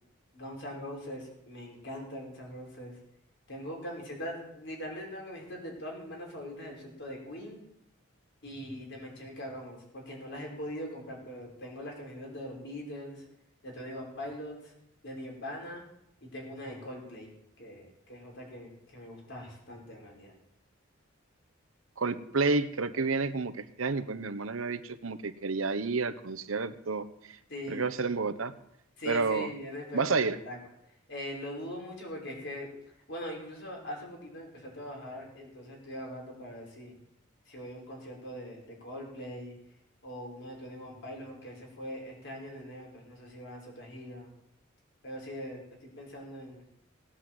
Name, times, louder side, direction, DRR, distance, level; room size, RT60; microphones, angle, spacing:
voice 1, 0.3-3.0 3.5-7.6 8.4-13.2 13.6-14.7 15.0-15.8 16.2-17.3 17.6-20.3 27.5-27.9 29.0-30.6 31.1-32.7 33.1-36.9 37.5-39.5 40.0-44.3 45.0-46.7, equal, 60° left, -1 dB, 5.5 m, -41 dB
voice 2, 22.0-27.4 27.7-28.5 29.1-29.5 29.9-30.4, right 4 dB, 90° right, 11 dB, 1.0 m, -30 dB
18.5 x 8.4 x 7.6 m, 0.79 s
head